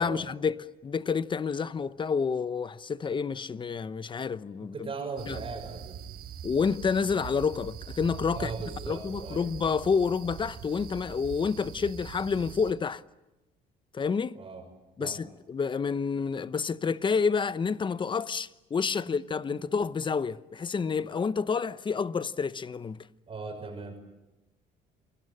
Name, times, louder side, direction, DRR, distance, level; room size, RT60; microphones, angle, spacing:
voice 1, 0.0-4.7 5.3-5.4 6.4-8.5 8.9-13.0 13.9-14.4 15.0-23.0, left 5 dB, 30° left, 0.9 m, -29 dB
voice 2, 4.6-6.0 8.3-9.5 14.3-14.7 15.0-15.2 19.0-19.2 19.5-19.6 23.3-24.0, right 4 dB, 30° right, 6.2 m, -39 dB
sound 1, 5.2-12.7, right 8 dB, 65° right, 3.7 m, -43 dB
28.5 x 23.0 x 8.9 m
cardioid pair, 110°, 17 cm